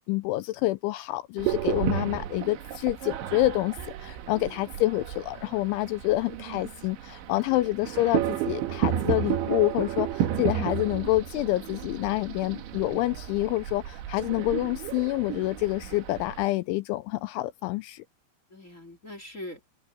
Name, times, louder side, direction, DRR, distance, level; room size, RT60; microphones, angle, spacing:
voice 1, 0.0-18.0, left 17 dB, 85° left, 2.8 m, -27 dB
sound 1, 1.4-16.5, right 11 dB, 70° right, 3.8 m, -32 dB
voice 2, 1.5-1.9 4.4-4.7 14.2-14.3 18.5-19.6, left 1 dB, 20° left, 2.5 m, -44 dB
omnidirectional pair, 5.8 m